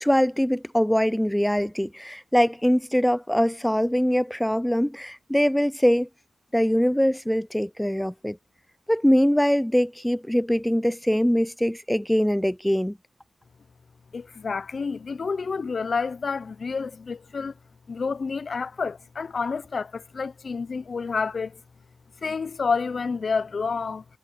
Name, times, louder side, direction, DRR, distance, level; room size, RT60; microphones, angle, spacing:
voice 1, 0.0-6.1 6.5-8.4 8.9-13.0, equal, 5° left, 0.4 m, -22 dB
voice 2, 14.1-17.5 17.9-21.6 22.2-24.0, left 5 dB, 45° left, 0.6 m, -29 dB
wide cardioid pair, 100°, 0 cm